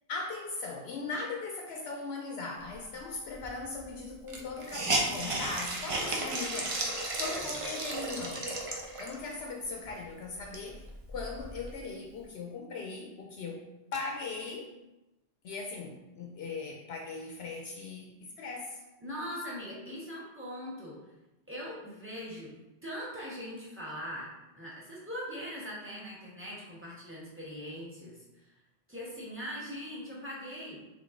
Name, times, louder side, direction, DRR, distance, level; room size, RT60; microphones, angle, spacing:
voice 1, 0.1-6.8 7.2-8.6 9.0-10.8 11.1-14.7 15.4-18.8, left 3 dB, 75° left, 1 dB, 0.8 m, -39 dB
Hiss, 3.4-3.5 3.7-3.8 4.3-9.3 9.9-10.0 10.3-11.7, right 2 dB, 35° right, 0.6 m, -34 dB
voice 2, 19.0-21.0 21.5-22.5 22.8-24.3 24.5-28.5 28.9-30.8, equal, 10° right, -7 dB, 1.3 m, -41 dB
3.8 x 3.4 x 3.6 m, 1.0 s
omnidirectional pair, 1.1 m